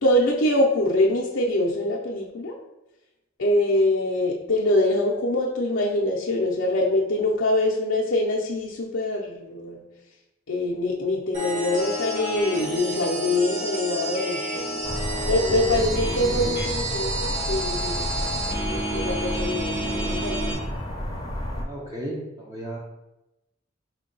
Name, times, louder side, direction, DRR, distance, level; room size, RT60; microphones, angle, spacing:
voice 1, 0.0-2.5 3.4-9.8 10.5-14.9 15.3-18.4 18.7-20.6, left 1 dB, 65° left, -5 dB, 0.5 m, -24 dB
sound 1, 11.3-20.5, right 1 dB, 40° right, 1.4 m, -30 dB
sound 2, 14.8-21.6, left 1 dB, 20° left, 0.6 m, -31 dB
voice 2, 21.6-22.8, right 1 dB, 20° right, -4 dB, 0.5 m, -34 dB
4.5 x 2.2 x 3.8 m, 0.95 s
head